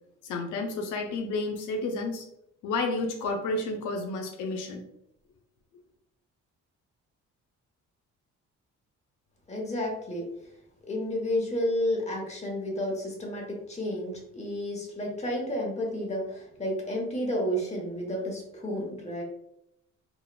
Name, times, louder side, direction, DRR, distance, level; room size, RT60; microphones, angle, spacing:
voice 1, 0.2-2.2 2.6-4.8, left 2 dB, 85° left, 3 dB, 0.5 m, -31 dB
voice 2, 9.5-10.2 10.9-19.2, equal, 20° left, -1 dB, 0.9 m, -31 dB
3.1 x 2.2 x 2.2 m, 0.78 s
cardioid pair, 90°, 30 cm